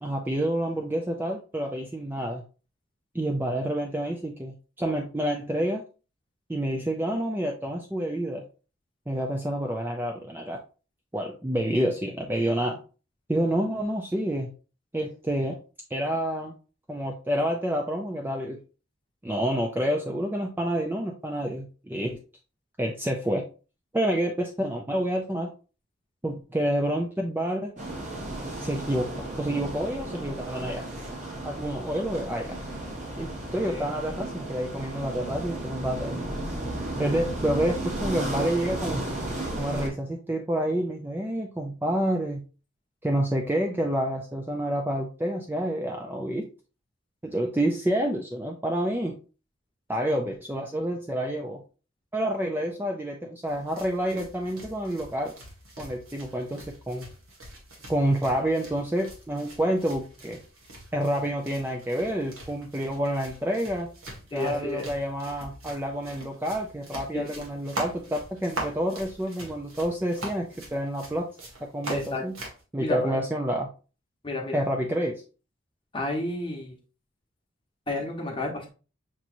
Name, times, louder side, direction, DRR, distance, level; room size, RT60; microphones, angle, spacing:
voice 1, 0.0-2.4 3.1-5.8 6.5-8.5 9.1-10.6 11.1-12.8 13.3-14.5 14.9-15.6 15.9-16.5 16.9-18.6 19.2-22.2 22.8-23.5 23.9-25.5 26.2-27.7 28.6-30.8 31.4-32.6 33.2-36.2 37.0-39.1 39.6-42.4 43.0-46.5 47.2-49.2 49.9-51.6 52.1-55.3 55.8-57.1 57.9-60.4 60.9-63.9 64.3-71.3 71.6-72.3 72.7-73.7 74.5-75.2, right 1 dB, 10° right, 1 dB, 0.4 m, -28 dB
sound 1, 27.8-39.9, right 1 dB, 35° right, 1.1 m, -34 dB
sound 2, 53.5-72.6, right 2 dB, 85° right, 1.5 m, -42 dB
voice 2, 64.3-64.9 67.1-67.5 71.9-72.2 72.8-73.2 74.2-74.6 75.9-76.8 77.9-78.7, left 2 dB, 25° left, 0 dB, 1.0 m, -31 dB
5.9 x 3.0 x 2.6 m, 0.35 s
head